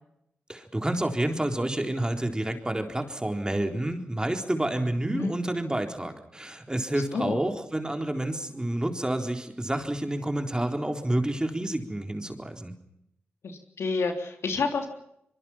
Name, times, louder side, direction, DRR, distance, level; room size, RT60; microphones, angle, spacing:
voice 1, 0.5-12.8, right 1 dB, 20° right, 5 dB, 4.0 m, -29 dB
voice 2, 4.8-5.3 6.9-7.4 13.4-14.9, left 4 dB, 80° left, 4 dB, 3.4 m, -30 dB
24.5 x 22.5 x 5.8 m, 0.76 s
cardioid pair, 50°, 4 cm